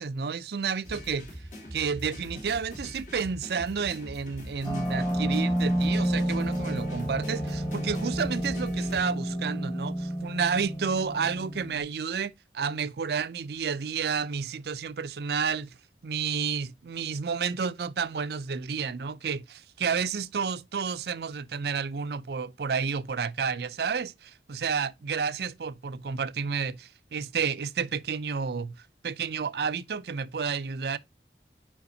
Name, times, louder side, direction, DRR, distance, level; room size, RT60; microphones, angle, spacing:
voice 1, 0.0-1.3 1.7-15.7 16.0-28.8 29.0-31.0, right 6 dB, 65° right, 0.4 m, -31 dB
sound 1, 0.8-9.0, equal, 45° left, 2.2 m, -43 dB
sound 2, 4.6-11.8, equal, 15° left, 1.7 m, -30 dB
6.8 x 5.1 x 2.7 m
head